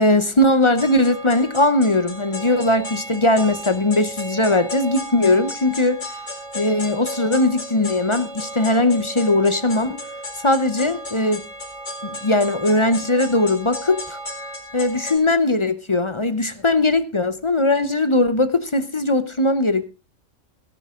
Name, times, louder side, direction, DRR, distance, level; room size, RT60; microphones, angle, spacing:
voice 1, 0.0-6.0 6.5-10.0 10.4-11.4 12.0-14.2 14.7-19.9, left 2 dB, 25° left, 12 dB, 0.8 m, -19 dB
sound 1, 0.8-15.2, equal, 75° left, 4.6 m, -34 dB
17.5 x 10.0 x 3.7 m, 0.31 s
omnidirectional pair, 1.3 m